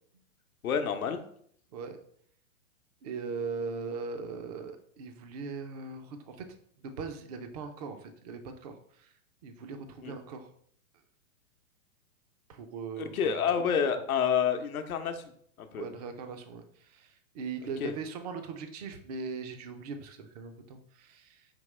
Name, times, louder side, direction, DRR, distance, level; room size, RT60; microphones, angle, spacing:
voice 1, 0.6-1.2 10.0-10.1 13.0-15.2 15.6-15.8 17.8-17.9, left 7 dB, 80° left, 8 dB, 0.8 m, -28 dB
voice 2, 3.0-6.5 6.8-9.1 9.4-10.5 12.5-13.3 13.7-13.8 15.7-21.5, right 5 dB, 30° right, 7 dB, 0.4 m, -40 dB
5.1 x 2.9 x 3.2 m, 0.64 s
hypercardioid pair, 135°, 42 cm